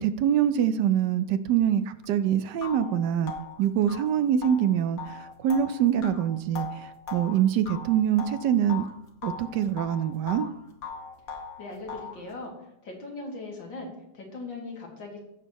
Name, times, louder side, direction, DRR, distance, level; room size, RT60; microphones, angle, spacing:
voice 1, 0.0-3.3 3.6-8.8 9.2-10.5, right 9 dB, 75° right, 11 dB, 1.1 m, -25 dB
sound 1, 2.0-2.1 2.6-8.9 9.2-10.5 10.8-12.2, left 5 dB, 55° left, 1.3 m, -39 dB
voice 2, 11.6-15.2, left 2 dB, 85° left, -1 dB, 2.7 m, -39 dB
15.0 x 6.3 x 3.0 m, 0.80 s
omnidirectional pair, 2.0 m